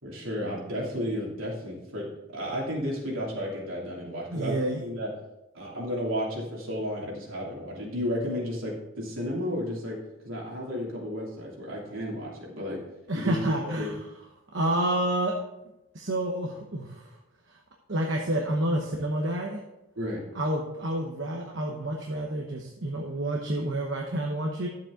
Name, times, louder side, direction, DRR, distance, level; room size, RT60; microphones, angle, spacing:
voice 1, 0.0-5.1 5.5-10.0 10.2-12.8 13.1-13.4 13.7-14.0 20.0-20.2, equal, 75° right, -4 dB, 3.0 m, -33 dB
voice 2, 4.3-4.8 13.1-13.9 14.5-15.3 15.9-17.1 17.9-19.6 20.3-24.7, right 1 dB, 60° right, 0 dB, 1.0 m, -29 dB
12.0 x 7.4 x 3.8 m, 0.92 s
head